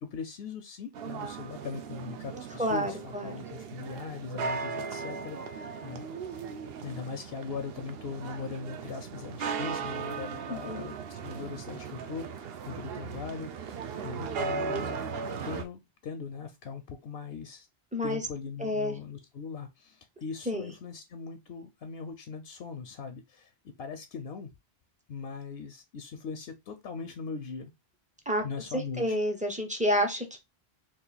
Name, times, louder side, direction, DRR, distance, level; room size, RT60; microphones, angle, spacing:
voice 1, 0.0-6.1 6.8-13.8 14.0-15.0 15.5-17.7 18.0-23.5 23.8-24.5 25.1-27.7 28.4-29.2, left 5 dB, 75° left, 0.8 m, -40 dB
sound 1, 0.9-15.6, right 5 dB, 70° right, 0.8 m, -37 dB
voice 2, 2.6-3.5 10.5-10.8 17.9-18.2 18.6-19.0 20.5-20.7 28.3-28.4 28.7-30.4, equal, 10° right, 0.5 m, -29 dB
3.0 x 2.5 x 3.9 m
omnidirectional pair, 1.1 m